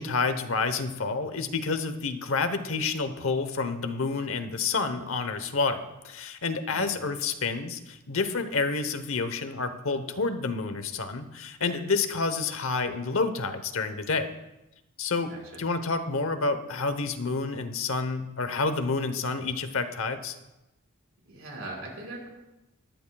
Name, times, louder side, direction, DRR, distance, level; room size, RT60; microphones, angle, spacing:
voice 1, 0.0-14.3 15.0-20.4, left 4 dB, 70° left, 10 dB, 0.9 m, -29 dB
voice 2, 15.3-15.6 21.3-22.3, right 2 dB, 70° right, -2 dB, 4.7 m, -40 dB
19.0 x 12.5 x 2.3 m, 0.97 s
head